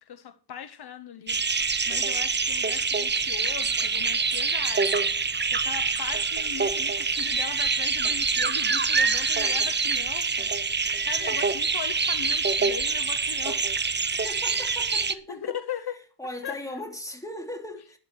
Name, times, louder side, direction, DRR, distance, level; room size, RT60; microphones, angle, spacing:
voice 1, 0.0-13.8 15.3-16.0 16.4-16.6 17.7-17.8, left 9 dB, 60° left, 1.0 m, -39 dB
sound 1, 1.3-15.1, right 4 dB, 25° right, 0.9 m, -25 dB
voice 2, 14.2-15.5 16.2-18.0, left 1 dB, 5° left, 3.1 m, -38 dB
13.0 x 9.8 x 4.8 m
cardioid pair, 90°, 44 cm